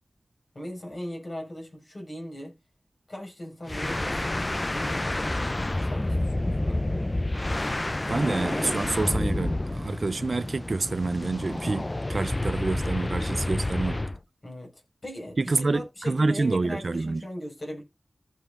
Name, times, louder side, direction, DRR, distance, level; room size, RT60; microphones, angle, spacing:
voice 1, 0.5-2.5 3.1-6.8 14.4-14.7 15.0-17.8, left 1 dB, 50° left, 5.0 m, -39 dB
sound 1, 3.7-14.2, left 1 dB, 30° left, 0.4 m, -29 dB
voice 2, 8.1-14.0 15.4-17.2, right 3 dB, 60° right, 0.4 m, -27 dB
15.0 x 5.3 x 2.5 m
wide cardioid pair, 65°, 0 cm